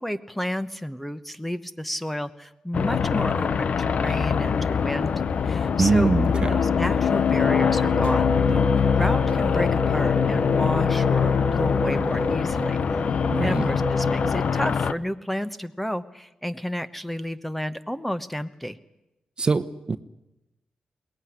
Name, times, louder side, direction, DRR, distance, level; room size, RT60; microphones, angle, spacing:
voice 1, 0.0-12.8 13.4-18.8, equal, 5° left, 12 dB, 1.0 m, -31 dB
sound 1, 2.7-14.9, left 6 dB, 65° left, 0.8 m, -23 dB
voice 2, 5.8-6.5 13.3-13.7 19.4-20.0, right 4 dB, 40° right, 12 dB, 1.0 m, -23 dB
sound 2, 7.4-14.3, equal, 35° left, 4.3 m, -31 dB
22.0 x 18.5 x 9.9 m, 0.94 s
cardioid pair, 90°, 2 cm